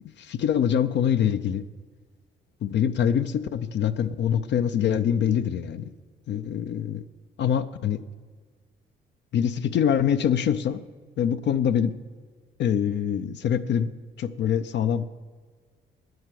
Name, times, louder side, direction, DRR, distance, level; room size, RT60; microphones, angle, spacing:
voice 1, 0.2-1.7 2.6-5.9 6.3-7.0 7.4-8.0 9.3-10.8 11.2-11.9 12.6-13.9 14.2-15.1, left 8 dB, 65° left, 11 dB, 0.5 m, -24 dB
9.1 x 7.9 x 7.5 m, 1.5 s
cardioid pair, 90°, 20 cm